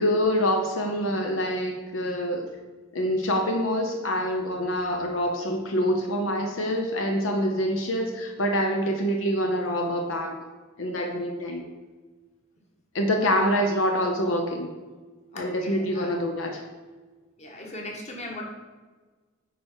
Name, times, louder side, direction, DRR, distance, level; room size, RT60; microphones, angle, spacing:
voice 1, 0.0-2.4 2.9-10.4 10.8-11.7 12.9-14.7 15.3-16.6, equal, 75° left, 3 dB, 0.9 m, -26 dB
voice 2, 15.3-16.1 17.4-18.4, left 1 dB, 35° left, 0 dB, 1.5 m, -38 dB
9.2 x 4.9 x 4.5 m, 1.4 s
head